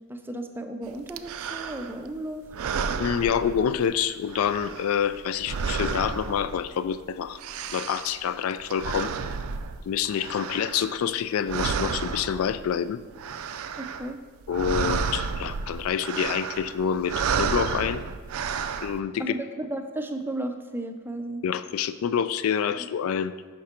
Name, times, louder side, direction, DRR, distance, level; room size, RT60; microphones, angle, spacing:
voice 1, 0.1-2.4 13.8-14.2 19.2-21.4 22.8-22.9, right 1 dB, 10° right, 6 dB, 0.4 m, -34 dB
sound 1, 1.1-2.1 2.5-4.0 4.3-7.0 7.2-11.2 11.5-12.7 13.0-14.1 14.4-19.0, right 6 dB, 85° right, 0.4 m, -31 dB
voice 2, 3.0-7.4 7.7-9.3 9.9-13.0 14.5-18.0 18.8-19.4 21.4-23.3, left 8 dB, 85° left, 13 dB, 0.3 m, -27 dB
6.3 x 5.8 x 4.2 m, 1.4 s
head